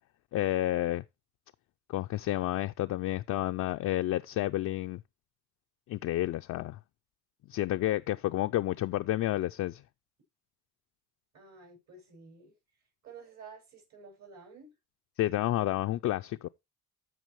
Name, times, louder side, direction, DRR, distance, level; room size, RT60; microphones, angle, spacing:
voice 1, 0.3-1.0 1.9-5.0 5.9-6.8 7.5-9.8 15.2-16.5, left 15 dB, 70° left, 0.5 m, -30 dB
voice 2, 11.3-12.5 13.0-14.7, right 4 dB, 65° right, 6.3 m, -51 dB
14.0 x 5.2 x 3.1 m
cardioid pair, 90°, 30 cm